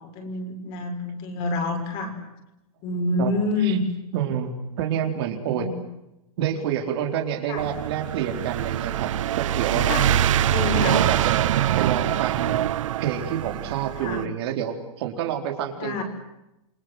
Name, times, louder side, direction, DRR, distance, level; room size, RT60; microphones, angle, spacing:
voice 1, 0.0-2.1 2.8-3.8 5.5-5.7 7.5-7.6 9.7-10.1 10.5-11.0 14.0-14.2 15.7-16.0, left 3 dB, 30° left, 4 dB, 6.4 m, -27 dB
voice 2, 4.1-5.7 6.4-9.1 9.4-10.2 10.7-11.5 11.8-12.6 13.0-16.0, right 9 dB, 45° right, 4 dB, 4.3 m, -28 dB
sound 1, 7.6-14.2, right 12 dB, 60° right, 1.0 m, -24 dB
29.0 x 24.5 x 8.0 m, 0.92 s
supercardioid pair, 170°, 19 cm